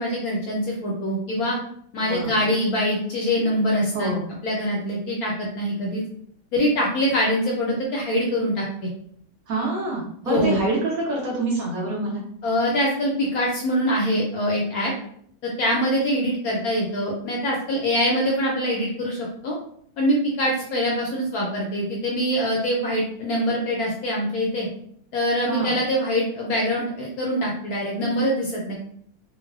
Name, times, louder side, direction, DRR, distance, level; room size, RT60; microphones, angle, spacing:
voice 1, 0.0-1.6 1.9-4.1 4.4-6.0 6.5-8.9 10.2-10.6 12.4-14.9 15.4-19.6 20.0-24.7 25.1-28.7, equal, 70° left, -2 dB, 0.9 m, -24 dB
voice 2, 2.0-2.3 3.9-4.3 9.5-12.2 25.5-25.7, right 2 dB, 65° right, -3 dB, 1.0 m, -26 dB
3.0 x 2.0 x 2.3 m, 0.65 s
omnidirectional pair, 1.9 m